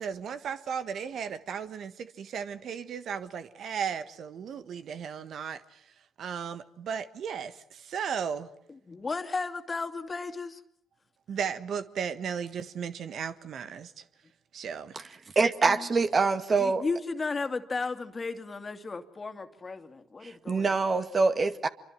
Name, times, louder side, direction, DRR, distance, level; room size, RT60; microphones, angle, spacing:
voice 1, 0.0-5.8 6.2-8.5 11.3-14.0 14.5-15.0, right 7 dB, 60° right, 1.4 m, -35 dB
voice 2, 8.9-10.6 15.6-15.9 16.6-20.9, left 4 dB, 35° left, 2.5 m, -34 dB
voice 3, 15.4-16.8 20.5-21.7, right 4 dB, 40° right, 2.1 m, -24 dB
27.0 x 24.0 x 7.7 m
hypercardioid pair, 50°, 0 cm